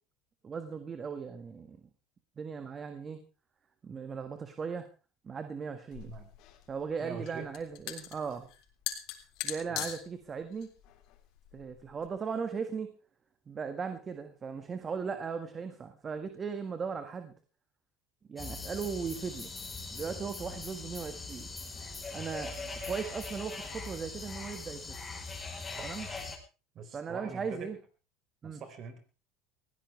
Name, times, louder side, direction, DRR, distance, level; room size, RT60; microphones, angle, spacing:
voice 1, 0.4-1.8 2.4-3.2 3.8-4.9 5.2-6.1 6.7-8.5 9.4-10.7 11.5-12.9 13.5-17.3 18.3-19.5 19.9-21.5 22.1-22.5 22.8-24.8 25.8-26.1 26.9-27.8 28.4-28.6, right 6 dB, 25° right, 8 dB, 1.7 m, -37 dB
sound 1, 5.9-12.1, left 12 dB, 60° left, 3.7 m, -42 dB
voice 2, 7.0-7.5 9.7-9.9 25.8-25.9 26.7-27.7 28.4-29.0, right 5 dB, 40° right, 8 dB, 4.5 m, -44 dB
sound 2, 18.4-26.4, left 3 dB, 15° left, 4.3 m, -41 dB
20.5 x 16.0 x 3.4 m, 0.33 s
supercardioid pair, 120°, 0 cm